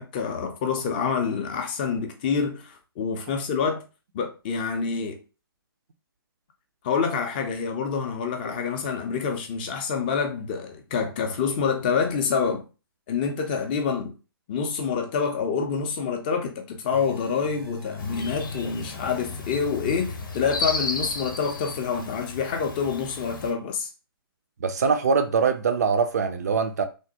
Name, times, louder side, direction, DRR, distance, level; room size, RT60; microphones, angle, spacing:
voice 1, 0.0-3.8 4.1-5.2 6.8-12.6 13.1-14.1 14.5-23.9, left 6 dB, 25° left, 0.4 m, -27 dB
sound 1, 16.9-22.8, left 3 dB, 80° right, 1.0 m, -41 dB
sound 2, 18.0-23.5, left 3 dB, 55° left, 0.6 m, -34 dB
voice 2, 24.6-26.8, right 5 dB, 40° right, 0.4 m, -23 dB
3.3 x 2.0 x 2.8 m
figure-of-eight pair, 130°, 13 cm